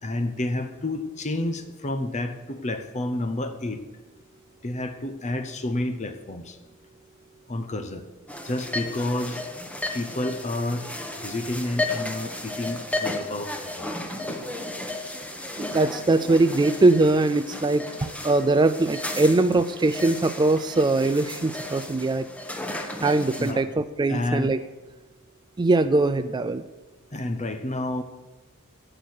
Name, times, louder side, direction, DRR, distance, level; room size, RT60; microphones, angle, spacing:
voice 1, 0.0-3.8 4.6-6.6 7.5-8.0 8.4-9.4 9.9-10.9 11.2-13.9 23.4-23.6 24.1-24.5 27.1-28.0, left 1 dB, 30° left, 8 dB, 0.8 m, -30 dB
sound 1, 8.3-23.5, left 2 dB, 5° left, 1.2 m, -34 dB
voice 2, 15.6-17.8 18.2-22.3 23.0-24.6 25.6-26.6, right 2 dB, 20° right, 10 dB, 0.3 m, -21 dB
13.5 x 9.0 x 6.4 m, 1.2 s
head